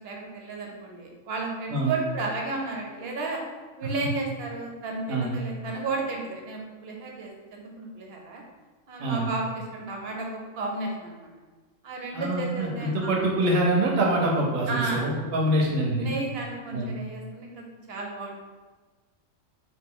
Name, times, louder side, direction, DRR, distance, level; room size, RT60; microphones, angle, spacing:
voice 1, 0.0-3.4 3.8-8.4 8.9-11.3 11.8-13.1 14.7-15.0 16.0-18.4, right 3 dB, 55° right, 0 dB, 0.8 m, -33 dB
voice 2, 12.1-16.1 16.7-16.9, right 1 dB, 80° right, -2 dB, 1.2 m, -25 dB
3.0 x 2.6 x 3.7 m, 1.3 s
omnidirectional pair, 1.4 m